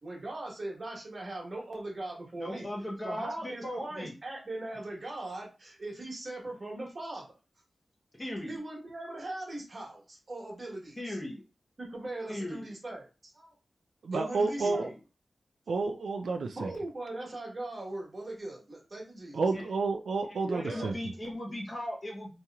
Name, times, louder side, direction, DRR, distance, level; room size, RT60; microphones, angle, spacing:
voice 1, 0.0-2.7 3.0-7.2 8.5-11.2 11.8-13.5 14.1-14.9 16.6-19.4 20.4-20.9, right 2 dB, 40° right, -2 dB, 1.3 m, -39 dB
voice 2, 2.4-4.1 8.2-8.6 11.0-11.4 12.3-12.6 14.6-15.0 19.5-19.6 20.3-22.3, left 1 dB, 25° left, -1 dB, 0.8 m, -38 dB
voice 3, 14.0-14.9 15.7-16.7 19.3-20.9, right 4 dB, 85° right, 5 dB, 0.3 m, -30 dB
2.9 x 2.8 x 2.3 m, 0.31 s
wide cardioid pair, 110°, 0 cm